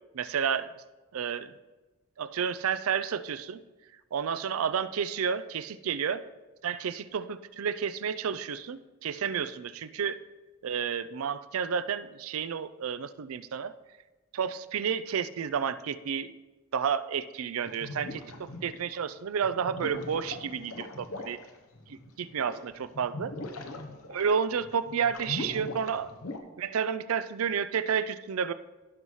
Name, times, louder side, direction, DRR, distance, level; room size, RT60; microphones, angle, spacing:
voice 1, 0.1-0.7 1.1-1.5 2.2-3.6 4.1-6.2 6.6-10.2 10.6-13.7 14.3-16.3 16.7-21.4 21.9-22.5 23.0-23.3 24.1-26.1 26.6-28.5, right 7 dB, 70° right, 14 dB, 0.4 m, -31 dB
sound 1, 17.6-19.0 19.4-26.4, left 2 dB, 85° left, 0.9 m, -41 dB
16.0 x 5.6 x 3.1 m, 1.2 s
head